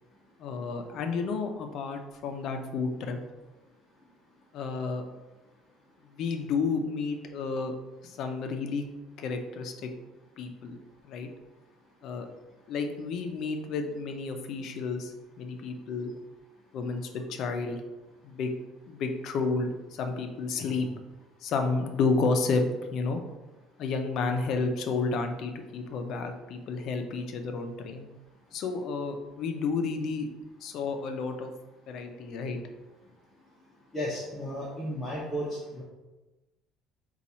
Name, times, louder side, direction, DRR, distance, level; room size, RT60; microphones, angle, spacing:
voice 1, 0.4-3.2 4.5-5.0 6.1-7.7 8.0-8.8 9.2-9.9 10.4-10.8 11.0-11.3 12.0-12.3 12.7-16.1 16.7-17.8 18.2-18.5 18.9-21.0 21.4-22.6 22.9-23.2 23.8-28.1 28.5-30.3 30.6-31.5 31.9-32.6, left 4 dB, 50° left, 5 dB, 0.4 m, -31 dB
voice 2, 33.9-35.8, equal, 5° left, -8 dB, 0.6 m, -34 dB
4.0 x 2.3 x 4.2 m, 1.1 s
cardioid pair, 170°, 0 cm